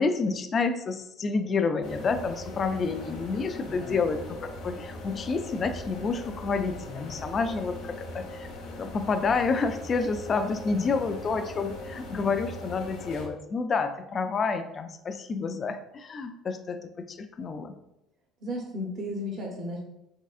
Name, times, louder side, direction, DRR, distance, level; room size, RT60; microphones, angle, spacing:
voice 1, 0.0-8.5 8.8-17.7, left 4 dB, 35° left, 8 dB, 0.3 m, -29 dB
sound 1, 1.8-13.3, left 1 dB, 85° left, 0.8 m, -40 dB
voice 2, 3.6-4.0 10.7-10.9 18.4-19.8, left 1 dB, 50° right, -1 dB, 0.7 m, -34 dB
3.7 x 3.3 x 2.4 m, 0.86 s
cardioid pair, 115°, 0 cm